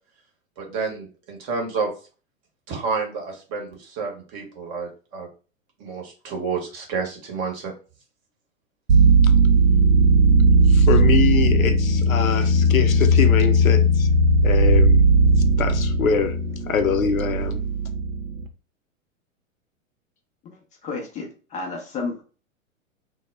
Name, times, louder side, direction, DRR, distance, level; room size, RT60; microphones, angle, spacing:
voice 1, 0.6-1.9 2.7-5.3 5.8-7.7, right 5 dB, 35° right, 0.9 m, -29 dB
sound 1, 8.9-18.5, right 1 dB, 75° right, 0.5 m, -17 dB
voice 2, 10.7-14.1 14.4-15.0 15.6-16.4 16.7-17.6, left 6 dB, 85° left, 0.5 m, -24 dB
voice 3, 20.4-22.2, left 4 dB, 20° left, 0.5 m, -32 dB
2.2 x 2.0 x 3.1 m
figure-of-eight pair, 100°, 40 cm